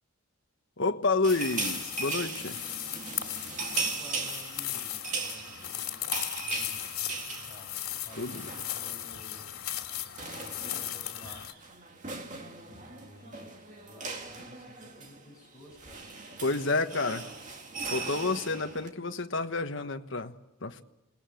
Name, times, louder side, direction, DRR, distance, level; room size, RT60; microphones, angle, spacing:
voice 1, 0.8-2.6 8.2-8.4 16.4-17.3 17.9-20.3 20.6-20.8, left 3 dB, 55° left, 6 dB, 1.4 m, -29 dB
sound 1, 1.2-9.1 9.4-9.6 9.8-18.9, right 3 dB, 35° right, 2.3 m, -38 dB
sound 2, 1.3-11.5, left 12 dB, 85° left, 2.8 m, -37 dB
voice 2, 3.7-7.7 8.0-9.6 10.4-16.8, equal, 15° left, -1 dB, 6.8 m, -54 dB
28.0 x 20.0 x 7.8 m, 0.91 s
head